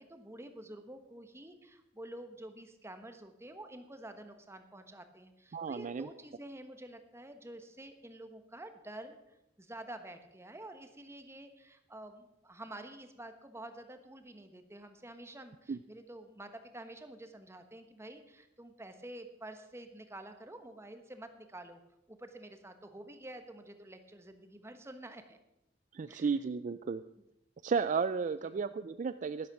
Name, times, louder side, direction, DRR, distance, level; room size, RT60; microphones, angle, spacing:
voice 1, 0.0-21.8 22.1-25.4 26.1-26.3 28.4-28.6, right 1 dB, 15° right, 8 dB, 1.2 m, -49 dB
voice 2, 5.5-6.1 15.7-15.8 25.9-27.0 27.6-29.5, right 5 dB, 40° right, 13 dB, 0.4 m, -33 dB
11.5 x 11.5 x 6.0 m, 0.84 s
head